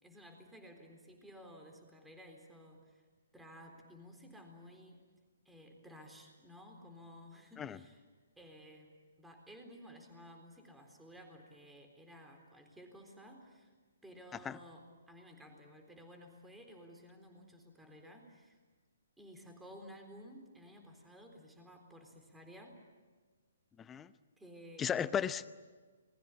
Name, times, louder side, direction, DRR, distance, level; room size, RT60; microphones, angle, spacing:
voice 1, 0.0-3.1 3.3-5.0 5.4-8.0 8.4-8.9 9.2-13.7 14.0-18.6 19.2-22.8 24.4-24.9, equal, 5° right, 3 dB, 3.9 m, -55 dB
voice 2, 24.8-25.5, left 8 dB, 15° left, 15 dB, 0.8 m, -35 dB
28.5 x 21.0 x 8.5 m, 1.4 s
figure-of-eight pair, 135°, 0 cm